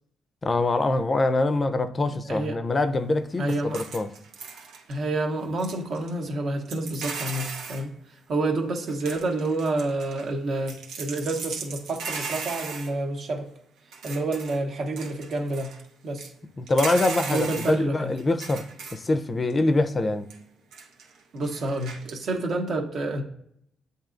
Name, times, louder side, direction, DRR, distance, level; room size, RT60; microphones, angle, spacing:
voice 1, 0.4-4.1 16.6-18.6 18.9-20.3, left 2 dB, 30° left, 0.4 m, -24 dB
voice 2, 3.4-3.8 4.9-7.9 8.3-13.5 14.0-15.7 16.0-16.3 17.2-18.1 21.3-23.2, right 2 dB, 60° right, 0.9 m, -28 dB
sound 1, 3.4-4.9 5.6-6.1 6.6-7.8 8.9-10.3 10.7-12.9 13.9-14.6 15.0-15.8 16.2-16.3 16.7-17.8 18.2-19.0 19.5-19.6 20.1-20.3 20.7-21.2 21.4-22.1, right 5 dB, 85° right, 0.9 m, -37 dB
7.7 x 2.7 x 2.5 m
cardioid pair, 90°, 0 cm